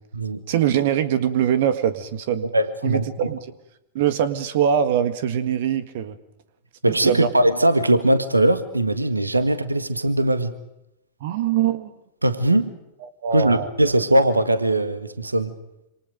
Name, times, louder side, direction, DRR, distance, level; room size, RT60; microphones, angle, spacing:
voice 1, 0.5-2.5 2.8-3.4 3.9-6.2 6.9-7.3 11.2-11.9 13.0-13.7, right 9 dB, 55° right, 12 dB, 1.7 m, -23 dB
voice 2, 2.5-3.0 6.8-10.5 12.2-12.7 13.3-15.5, right 1 dB, 85° right, 11 dB, 1.7 m, -20 dB
27.5 x 27.0 x 5.2 m, 0.87 s
figure-of-eight pair, 90°, 0 cm